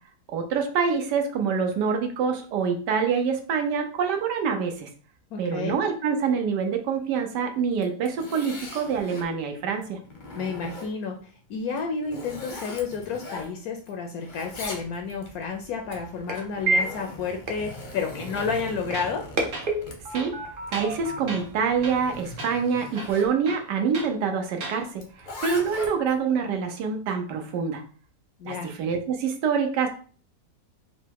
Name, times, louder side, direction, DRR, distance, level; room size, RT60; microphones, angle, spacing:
voice 1, 0.3-4.9 5.4-10.0 20.1-20.3 20.7-27.8 28.4-29.9, right 6 dB, 85° right, 4 dB, 1.3 m, -26 dB
voice 2, 5.3-5.7 10.3-19.2 28.4-28.7, left 5 dB, 70° left, 4 dB, 1.0 m, -31 dB
Zipper (clothing), 7.7-9.3 9.8-11.2 11.7-13.9 14.2-15.3 16.2-23.3 25.0-26.2, left 2 dB, 45° left, 0.7 m, -40 dB
sound 1, 14.5-22.4, right 2 dB, 45° right, 0.8 m, -33 dB
Tools, 18.3-18.6 18.9-19.2 19.5-19.7 20.1-21.0 21.3-21.5 21.8-22.1 22.4-22.5 22.9-24.1 24.5-24.8, right 2 dB, 65° right, 1.5 m, -37 dB
4.0 x 2.1 x 4.5 m, 0.42 s
omnidirectional pair, 1.8 m